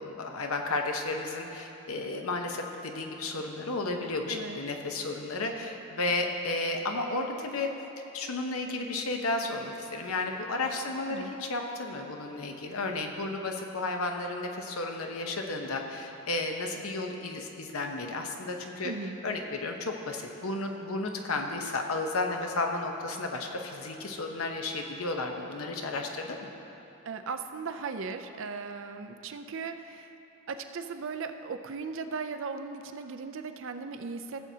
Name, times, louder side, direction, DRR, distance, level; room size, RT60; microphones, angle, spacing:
voice 1, 0.0-7.7 8.1-18.9 19.2-26.5, left 2 dB, 70° left, 3 dB, 0.8 m, -33 dB
voice 2, 4.3-4.6 11.1-11.3 18.8-19.2 27.0-30.1 30.5-34.4, right 4 dB, 60° right, 7 dB, 0.5 m, -37 dB
15.5 x 7.5 x 2.8 m, 2.9 s
head